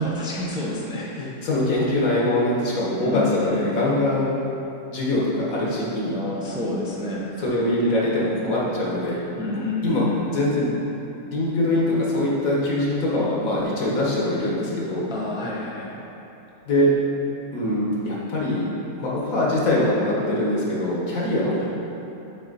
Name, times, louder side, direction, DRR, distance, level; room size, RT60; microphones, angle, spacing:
voice 1, 0.0-1.3 3.0-3.8 6.1-7.3 9.4-10.4 15.1-16.0 21.6-21.7, left 1 dB, 5° right, -5 dB, 0.4 m, -29 dB
voice 2, 1.2-4.3 4.9-6.2 7.4-9.2 9.8-10.7 11.3-15.1 16.7-16.9 17.5-18.7 19.0-21.7, left 1 dB, 65° left, -5 dB, 1.7 m, -23 dB
7.7 x 4.1 x 4.1 m, 2.9 s
omnidirectional pair, 1.6 m